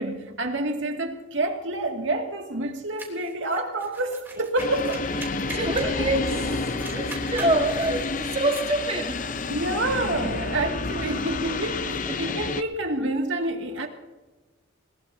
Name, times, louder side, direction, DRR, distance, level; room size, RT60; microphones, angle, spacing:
voice 1, 0.0-5.0 9.5-13.9, right 2 dB, 70° right, 2.4 m, -28 dB
sound 1, 3.0-6.4 6.7-8.7, right 2 dB, 10° right, 3.1 m, -42 dB
sound 2, 4.6-12.6, left 3 dB, 40° left, 0.7 m, -29 dB
voice 2, 5.4-6.3 6.9-9.3 12.1-12.4, right 2 dB, 30° right, 1.7 m, -26 dB
20.5 x 20.5 x 2.8 m
head